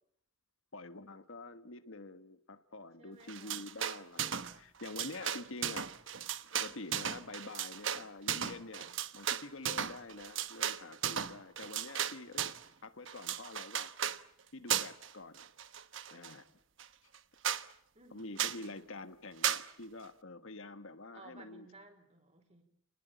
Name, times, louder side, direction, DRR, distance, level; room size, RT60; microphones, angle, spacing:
voice 1, 0.7-5.9 6.5-12.5 12.8-13.9 14.5-15.5 16.1-16.4 18.1-21.7, left 2 dB, 70° left, 10 dB, 1.4 m, -47 dB
voice 2, 3.0-3.7 17.9-18.8 21.1-22.6, right 3 dB, 30° right, 5 dB, 4.7 m, -58 dB
sound 1, 3.3-4.5 4.8-12.7 13.1-14.2 14.7-15.1 15.4-16.3 16.8-16.9 17.1-17.2 17.4-17.7 18.4-18.6 19.4-19.7, right 9 dB, 65° right, 1.1 m, -36 dB
29.5 x 19.5 x 9.1 m, 0.71 s
head